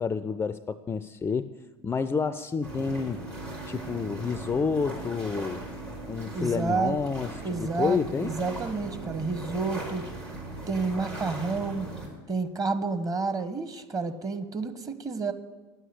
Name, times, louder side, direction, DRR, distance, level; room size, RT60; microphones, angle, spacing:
voice 1, 0.0-1.6 1.8-3.2 3.7-5.6 6.1-8.3, left 5 dB, 15° left, 14 dB, 0.4 m, -29 dB
sound 1, 2.6-12.1, right 2 dB, 90° right, 3.5 m, -38 dB
voice 2, 6.3-7.0 7.4-10.1 10.7-11.9 12.3-15.3, right 4 dB, 25° right, 9 dB, 1.1 m, -30 dB
9.4 x 8.0 x 9.5 m, 1.3 s
figure-of-eight pair, 70°, 14 cm